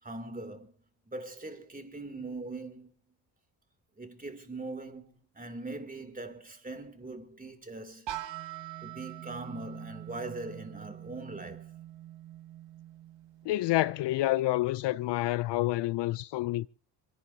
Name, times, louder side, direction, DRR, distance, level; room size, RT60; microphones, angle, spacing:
voice 1, 0.0-0.7 1.1-2.9 4.0-8.1 8.8-11.7, right 2 dB, 20° right, 3.1 m, -41 dB
sound 1, 8.1-13.9, right 13 dB, 70° right, 1.9 m, -44 dB
voice 2, 13.5-16.7, left 16 dB, 65° left, 0.6 m, -28 dB
27.5 x 11.0 x 2.8 m
supercardioid pair, 60°, 46 cm